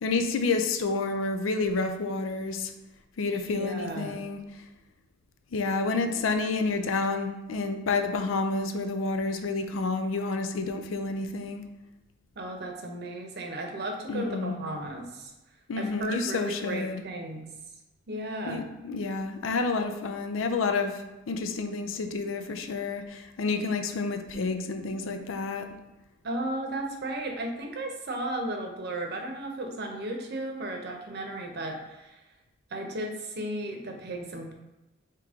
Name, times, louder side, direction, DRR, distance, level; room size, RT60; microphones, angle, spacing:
voice 1, 0.0-2.7 3.2-4.4 5.5-11.7 14.1-14.6 15.7-17.0 18.5-25.7, left 3 dB, 85° left, 7 dB, 0.5 m, -29 dB
voice 2, 3.5-4.2 12.4-15.3 15.8-17.4 18.1-18.7 26.2-32.2 32.7-34.5, right 1 dB, 55° right, 3 dB, 0.7 m, -35 dB
5.0 x 2.9 x 3.6 m, 1.0 s
head